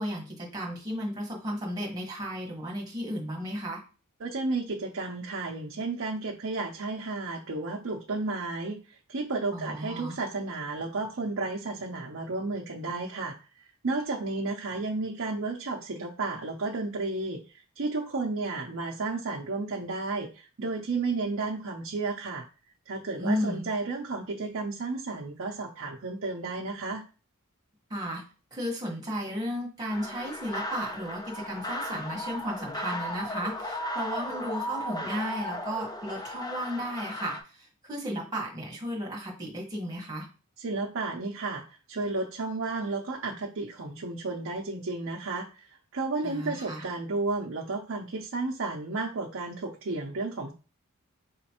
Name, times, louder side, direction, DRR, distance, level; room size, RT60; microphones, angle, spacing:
voice 1, 0.0-3.8 9.5-10.2 23.2-23.7 27.9-28.2 28.5-40.3 46.2-46.8, equal, 15° right, -2 dB, 1.4 m, -34 dB
voice 2, 4.2-13.4 13.8-17.4 17.8-22.5 22.9-27.0 40.6-50.5, right 3 dB, 60° right, -1 dB, 0.6 m, -32 dB
sound 1, 29.9-37.4, left 1 dB, 15° left, 0.5 m, -36 dB
5.0 x 3.1 x 2.9 m, 0.35 s
head